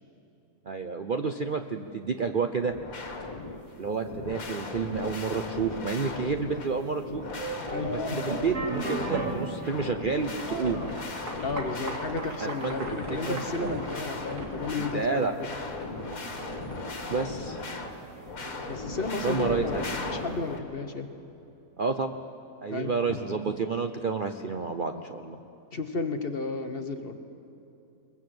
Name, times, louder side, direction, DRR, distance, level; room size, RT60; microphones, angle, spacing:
voice 1, 0.7-2.7 3.8-7.2 8.1-10.9 12.4-12.8 13.3-13.4 13.7-13.8 14.8-15.3 17.1-17.6 19.2-20.2 21.8-22.1 22.6-25.4, right 5 dB, 45° right, 6 dB, 0.8 m, -30 dB
sound 1, 2.6-3.6 4.0-6.7 7.0-9.3 9.6-15.0 15.4-17.9 18.2-20.6, left 3 dB, 65° left, 2.3 m, -37 dB
sound 2, 7.2-19.9, right 2 dB, 90° right, 3.2 m, -38 dB
voice 2, 7.7-8.5 11.4-15.5 18.7-21.1 22.7-23.2 25.7-27.1, left 3 dB, 40° left, 7 dB, 1.4 m, -33 dB
22.5 x 21.5 x 7.9 m, 2.8 s
omnidirectional pair, 1.6 m